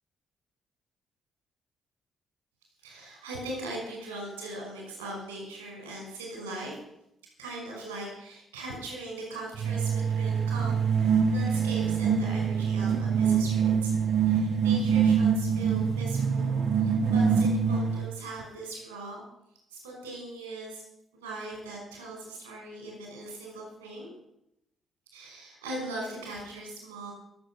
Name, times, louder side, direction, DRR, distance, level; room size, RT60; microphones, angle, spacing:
voice 1, 2.8-6.8 7.4-13.9 14.2-19.2 19.7-20.8 21.1-24.1 25.1-27.1, right 2 dB, 85° right, -1 dB, 5.4 m, -40 dB
sound 1, 9.6-18.2, right 6 dB, 55° right, 0.9 m, -25 dB
21.0 x 7.9 x 6.1 m, 0.81 s
figure-of-eight pair, 40°, 0 cm